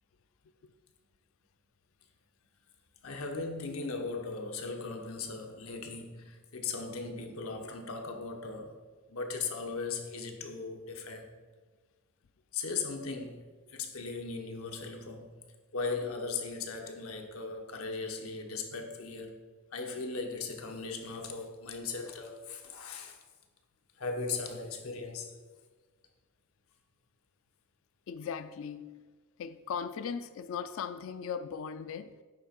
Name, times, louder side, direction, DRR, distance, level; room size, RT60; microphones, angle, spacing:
voice 1, 3.0-8.8 9.1-11.3 12.5-13.4 13.7-15.3 15.7-19.3 19.7-23.2 24.0-25.3, left 4 dB, 90° left, 1.0 m, -38 dB
voice 2, 28.1-29.1 29.4-32.2, left 6 dB, 65° left, 0.3 m, -38 dB
9.1 x 3.3 x 5.8 m
head